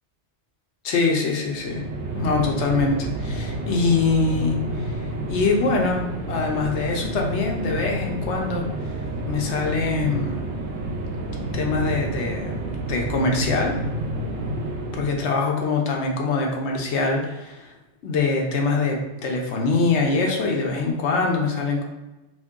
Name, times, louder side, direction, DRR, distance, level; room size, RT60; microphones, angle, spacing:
voice 1, 0.8-1.8 2.1-5.0 5.3-8.7 9.3-10.4 11.5-12.5 12.9-13.8 14.9-17.7 18.0-21.8, left 3 dB, 80° left, 0 dB, 1.0 m, -23 dB
sound 1, 1.5-15.4, right 1 dB, 85° right, 0.9 m, -29 dB
2.6 x 2.6 x 3.6 m, 1.0 s
omnidirectional pair, 1.2 m